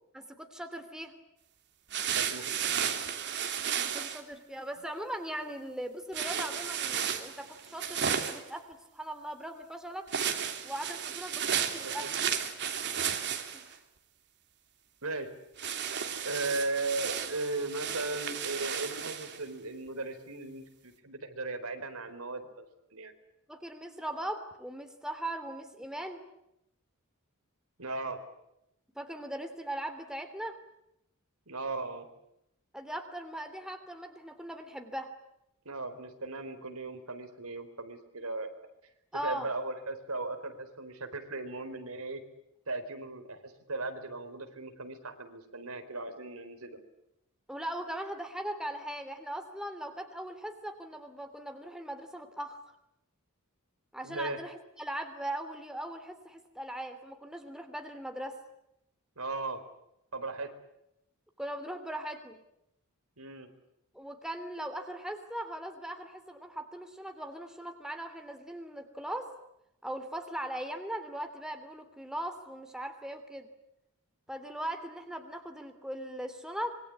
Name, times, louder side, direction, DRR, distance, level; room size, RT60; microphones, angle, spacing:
voice 1, 0.1-1.1 3.8-10.1 10.6-12.1 13.5-13.8 23.5-26.2 28.9-30.6 32.7-35.1 39.1-39.5 47.5-52.6 53.9-58.4 61.4-62.4 63.9-69.3 69.8-73.5 74.3-76.8, right 1 dB, 5° right, 7 dB, 3.0 m, -39 dB
sound 1, 1.9-4.2 6.1-8.5 10.1-13.7 15.6-19.4, right 8 dB, 55° right, 3.0 m, -33 dB
voice 2, 2.1-2.9 11.8-12.2 15.0-15.3 16.2-22.7 22.9-23.1 27.8-28.2 31.5-32.1 35.6-38.5 39.2-42.2 42.7-46.8 54.0-54.4 59.2-59.6 60.1-60.5 63.2-63.5, right 2 dB, 80° right, 7 dB, 4.3 m, -37 dB
26.5 x 24.0 x 8.6 m, 0.82 s
head